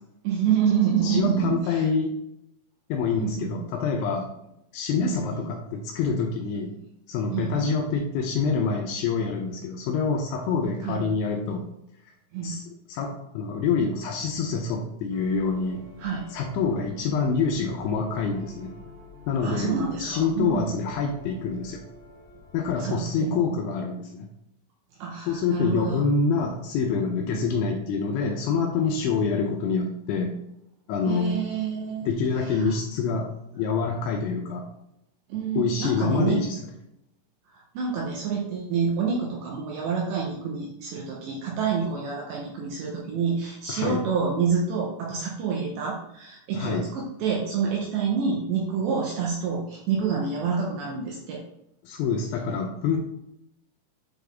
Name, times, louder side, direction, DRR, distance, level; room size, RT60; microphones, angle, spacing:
voice 1, 0.2-1.9 3.2-3.6 5.0-5.5 7.3-7.7 10.8-11.0 12.3-12.6 16.0-16.3 19.4-20.7 22.8-23.5 25.0-26.0 27.3-27.4 31.1-32.1 32.4-32.7 35.3-36.4 37.5-51.4, right 6 dB, 80° right, -2 dB, 2.6 m, -27 dB
voice 2, 1.0-2.1 2.9-4.3 4.7-6.7 7.1-11.7 12.4-12.6 12.9-15.9 16.3-18.8 19.3-19.7 20.0-21.8 22.5-24.3 25.3-30.4 30.9-31.4 32.0-34.7 35.6-36.6 43.7-44.0 46.5-46.9 51.8-53.0, left 5 dB, 80° left, 1 dB, 2.8 m, -26 dB
sound 1, 15.1-22.8, left 2 dB, 60° left, 1.6 m, -47 dB
8.5 x 4.0 x 3.5 m, 0.79 s
omnidirectional pair, 6.0 m